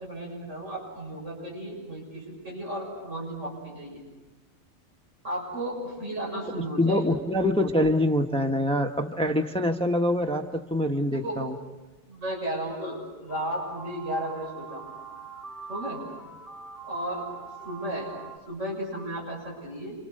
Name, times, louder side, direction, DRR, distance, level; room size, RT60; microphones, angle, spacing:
voice 1, 0.0-4.0 5.2-7.0 11.1-11.4 12.1-14.8 15.7-16.0 16.9-17.3 17.6-18.1 18.5-20.0, right 1 dB, 65° right, -2 dB, 7.2 m, -34 dB
voice 2, 6.5-11.6, left 1 dB, 5° left, 5 dB, 1.1 m, -25 dB
sound 1, 13.3-18.4, right 5 dB, 40° right, 4.8 m, -43 dB
29.0 x 27.0 x 6.7 m, 1.2 s
omnidirectional pair, 1.4 m